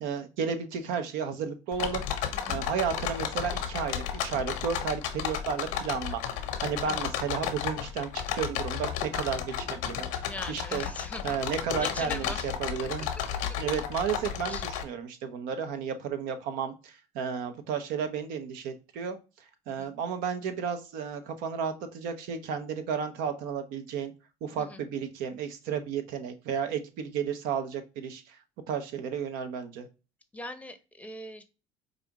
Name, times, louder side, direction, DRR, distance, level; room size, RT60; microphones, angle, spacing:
voice 1, 0.0-2.0 2.5-6.2 6.6-10.1 10.5-10.9 11.2-13.1 13.6-19.2 19.7-24.1 24.4-28.4 28.7-29.9, right 7 dB, 70° right, 8 dB, 0.7 m, -33 dB
sound 1, 1.7-14.8, left 8 dB, 75° left, 0.7 m, -33 dB
voice 2, 10.2-11.4 11.8-12.5 14.5-14.6 19.8-19.9 24.6-24.8 30.3-31.4, left 1 dB, 10° left, 7 dB, 0.7 m, -41 dB
4.9 x 2.5 x 2.9 m, 0.30 s
supercardioid pair, 75°, 15 cm